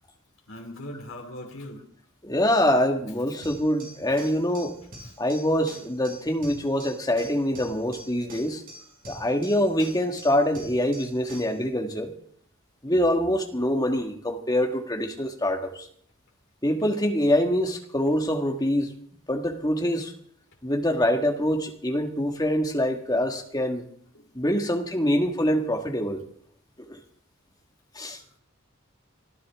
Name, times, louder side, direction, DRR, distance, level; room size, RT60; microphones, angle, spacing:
voice 1, 0.5-1.8 5.0-5.1 24.1-24.6, left 1 dB, 70° left, 1 dB, 3.2 m, -40 dB
voice 2, 2.2-4.7 5.2-8.6 9.1-12.1 12.8-15.9 16.6-18.9 19.3-20.1 20.6-23.9 24.3-26.2 26.9-27.0 27.9-28.2, equal, 20° left, 3 dB, 1.9 m, -25 dB
sound 1, 3.4-11.6, equal, 40° right, 6.0 m, -46 dB
24.5 x 13.5 x 3.7 m, 0.62 s
head